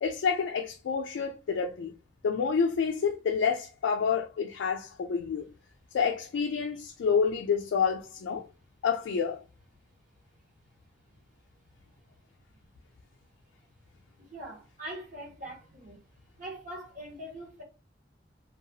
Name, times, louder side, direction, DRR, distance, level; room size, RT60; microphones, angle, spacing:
voice 1, 0.0-1.9 2.2-5.5 5.9-8.5 8.8-9.4, left 6 dB, 80° left, 0.3 m, -28 dB
voice 2, 14.2-16.0 16.4-17.6, right 1 dB, 45° right, 0.9 m, -42 dB
2.8 x 2.3 x 2.6 m
head